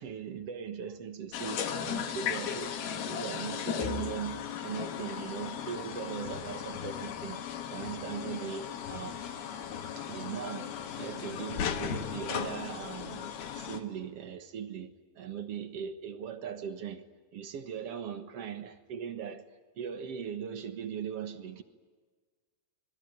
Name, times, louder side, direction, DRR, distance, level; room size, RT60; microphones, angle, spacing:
voice 1, 0.0-7.4 7.7-9.3 10.0-17.0 17.3-19.4 19.8-21.6, right 8 dB, 60° right, 9 dB, 1.6 m, -39 dB
sound 1, 1.3-13.8, left 8 dB, 75° left, 3.5 m, -36 dB
26.0 x 21.0 x 9.2 m, 1.5 s
omnidirectional pair, 4.4 m